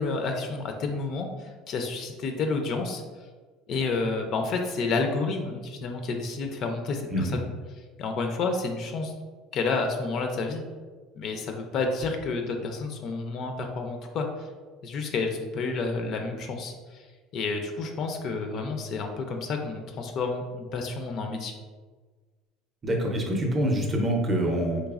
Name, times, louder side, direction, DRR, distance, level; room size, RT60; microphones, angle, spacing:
voice 1, 0.0-3.0 3.7-7.5 8.0-9.1 9.5-10.6 11.2-14.5 14.8-17.1 17.3-21.5, left 3 dB, 40° left, 4 dB, 0.3 m, -30 dB
voice 2, 22.8-24.8, right 1 dB, 20° right, 1 dB, 0.5 m, -25 dB
4.0 x 3.2 x 2.4 m, 1.4 s
cardioid pair, 165°, 0 cm